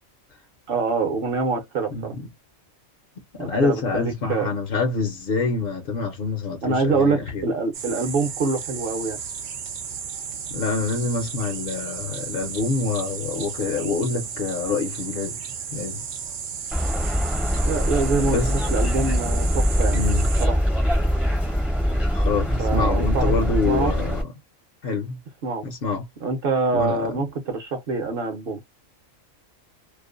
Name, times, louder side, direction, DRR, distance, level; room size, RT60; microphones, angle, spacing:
voice 1, 0.7-2.1 3.4-4.5 6.6-9.2 17.6-20.0 20.4-20.6 22.6-23.3 23.6-23.9 25.4-25.7 26.2-28.6, right 4 dB, 55° right, 0.7 m, -25 dB
voice 2, 1.9-2.3 3.3-7.5 10.5-15.4 15.7-16.0 18.2-18.5 19.9-20.3 21.9-24.3 24.8-25.2 25.6-26.1 26.7-27.2, left 4 dB, 60° left, 0.7 m, -26 dB
sound 1, 7.7-20.5, right 7 dB, 85° right, 0.4 m, -34 dB
sound 2, 16.7-24.2, equal, ahead, 0.4 m, -23 dB
2.5 x 2.0 x 2.4 m
omnidirectional pair, 1.4 m